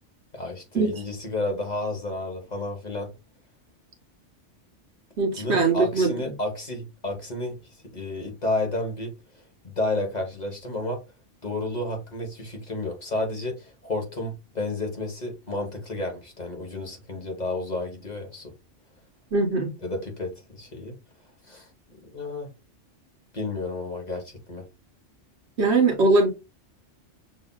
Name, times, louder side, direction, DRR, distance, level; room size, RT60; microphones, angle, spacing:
voice 1, 0.3-3.1 5.4-9.1 9.6-11.0 11.4-18.5 19.8-21.0 21.4-21.7 22.1-22.5 23.3-24.6, left 2 dB, 40° left, 1.2 m, -31 dB
voice 2, 5.2-6.1 19.3-19.7 25.6-26.3, right 3 dB, 65° right, 1.2 m, -21 dB
6.3 x 2.7 x 2.2 m
omnidirectional pair, 1.2 m